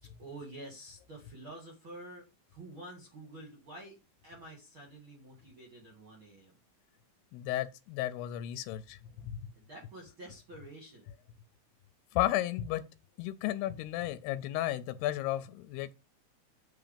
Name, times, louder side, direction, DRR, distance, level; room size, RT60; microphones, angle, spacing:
voice 1, 0.0-4.0 4.2-6.5 9.6-11.1, right 1 dB, 50° right, 1.7 m, -49 dB
voice 2, 7.3-9.4 12.1-12.8 13.2-15.9, left 14 dB, 80° left, 2.4 m, -33 dB
8.1 x 3.9 x 5.1 m
omnidirectional pair, 4.8 m